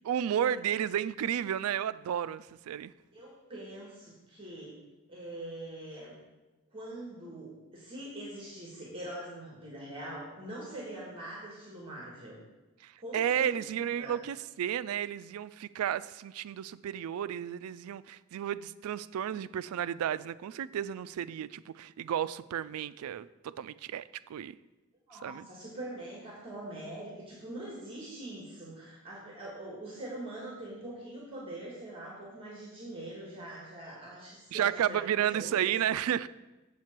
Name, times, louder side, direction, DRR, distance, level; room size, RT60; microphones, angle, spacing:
voice 1, 0.0-2.9 12.8-24.6 25.2-25.5 34.5-36.3, right 10 dB, 90° right, 16 dB, 0.3 m, -32 dB
voice 2, 3.1-4.8 5.1-6.1 6.7-12.4 13.0-13.5 14.0-14.2 25.1-35.7, right 1 dB, 25° right, -4 dB, 1.8 m, -43 dB
7.5 x 7.3 x 4.5 m, 1.1 s
head